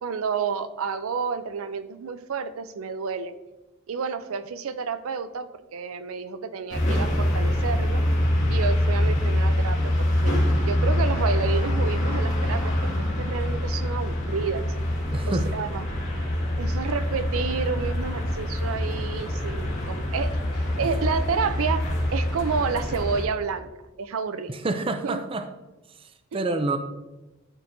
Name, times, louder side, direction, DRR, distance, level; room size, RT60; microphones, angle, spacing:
voice 1, 0.0-3.3 3.9-8.0 8.5-12.9 13.2-14.6 15.3-15.8 16.6-21.9 22.1-23.7 24.0-24.5 25.0-25.2, right 5 dB, 80° right, 11 dB, 0.5 m, -30 dB
sound 1, 6.7-23.2, left 1 dB, 60° left, 2.1 m, -25 dB
voice 2, 15.1-15.5 24.5-25.5 26.0-26.8, right 2 dB, 25° right, 8 dB, 0.4 m, -28 dB
12.5 x 4.6 x 2.7 m, 1.1 s
head